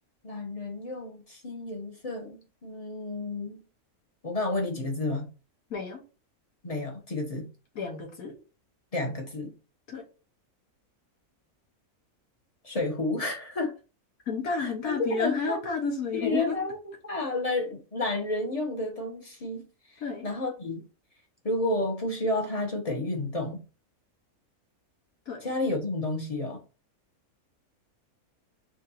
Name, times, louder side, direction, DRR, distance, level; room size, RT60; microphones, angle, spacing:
voice 1, 0.2-3.6 4.2-5.3 6.6-7.5 8.9-9.5 12.6-13.7 14.6-15.6 16.1-16.8 17.0-19.6 19.9-20.9 21.4-23.6 25.4-26.6, left 2 dB, 30° left, 0.8 m, -31 dB
voice 2, 5.7-6.0 7.7-8.3 9.9-10.0 14.3-16.6 20.0-20.3 25.3-25.4, left 5 dB, 75° left, 1.6 m, -31 dB
6.0 x 2.6 x 2.8 m
omnidirectional pair, 1.5 m